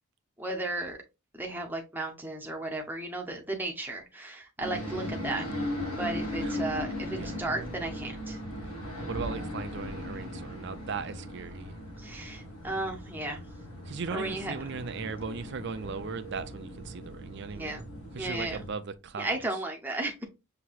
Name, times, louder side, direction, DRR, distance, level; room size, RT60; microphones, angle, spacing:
voice 1, 0.4-1.0 1.4-5.4 5.9-8.4 12.0-13.4 14.1-14.5 17.5-17.8 18.2-18.6 19.2-20.2, right 2 dB, 10° right, 0.7 m, -34 dB
sound 1, 4.6-18.7, left 1 dB, 90° left, 1.6 m, -38 dB
voice 2, 4.6-5.2 6.4-6.6 7.1-7.4 9.0-11.8 13.9-17.8 18.1-19.4, right 5 dB, 50° right, 0.5 m, -38 dB
5.8 x 2.9 x 2.4 m
head